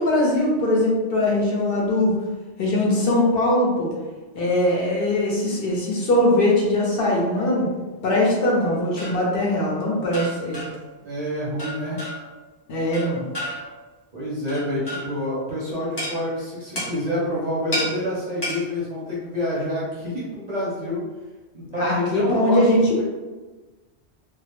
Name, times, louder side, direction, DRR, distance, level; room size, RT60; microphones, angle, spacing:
voice 1, 0.0-2.2 2.6-3.9 4.3-7.7 8.0-10.7 12.7-13.3 21.8-23.0, left 1 dB, 65° left, -3 dB, 0.7 m, -21 dB
sound 1, 8.7-9.3 10.1-10.9 11.6-12.4 12.9-13.8 14.5-15.2 16.0-16.2 16.7-17.0 17.7-17.9 18.4-18.6, equal, 30° left, 0.6 m, -31 dB
voice 2, 11.0-12.0 14.1-21.0 21.5-22.6 23.0-23.1, left 1 dB, 50° right, -7 dB, 0.6 m, -27 dB
2.1 x 2.0 x 2.8 m, 1.2 s
omnidirectional pair, 1.1 m